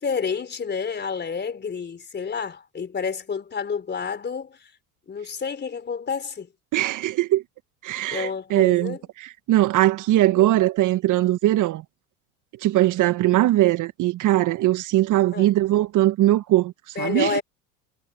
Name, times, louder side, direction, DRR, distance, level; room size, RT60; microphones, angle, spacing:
voice 1, 0.0-4.7 5.1-6.5 8.1-9.0 10.4-10.5 15.3-15.5 17.0-17.4, left 5 dB, 25° left, 3.5 m, -29 dB
voice 2, 6.7-7.4 7.8-11.8 12.6-17.4, right 15 dB, 45° right, 1.6 m, -21 dB
hypercardioid pair, 85°, 42 cm